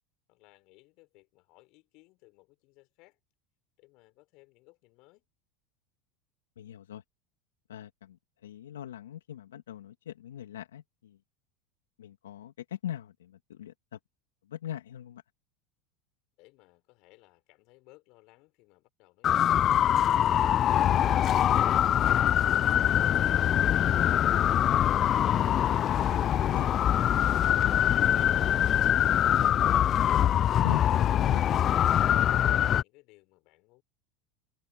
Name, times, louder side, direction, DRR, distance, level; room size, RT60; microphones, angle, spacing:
voice 1, 0.3-3.2 3.8-5.3 16.4-20.4 30.9-33.8, left 23 dB, 60° left, 6.0 m, -59 dB
voice 2, 6.6-7.0 7.7-8.2 8.4-11.2 12.0-14.0 14.5-15.2 26.5-26.7 30.6-31.4, left 11 dB, 85° left, 2.0 m, -40 dB
sound 1, 19.2-32.8, left 10 dB, 40° left, 0.3 m, -24 dB
hypercardioid pair, 90°, 0 cm